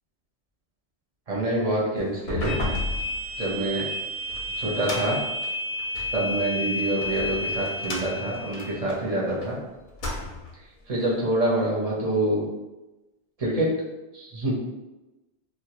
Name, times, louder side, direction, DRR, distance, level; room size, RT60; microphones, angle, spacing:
voice 1, 1.3-2.5 3.4-3.9 4.6-5.2 6.1-9.6 10.9-12.4 13.4-13.7 14.1-14.6, right 1 dB, 45° right, -6 dB, 0.6 m, -26 dB
sound 1, 2.1-6.2 6.8-9.5 9.8-10.6, left 2 dB, 60° left, 0.6 m, -34 dB
sound 2, 2.4-8.8, left 1 dB, 20° left, 0.6 m, -31 dB
2.1 x 2.1 x 2.8 m, 1.0 s
omnidirectional pair, 1.1 m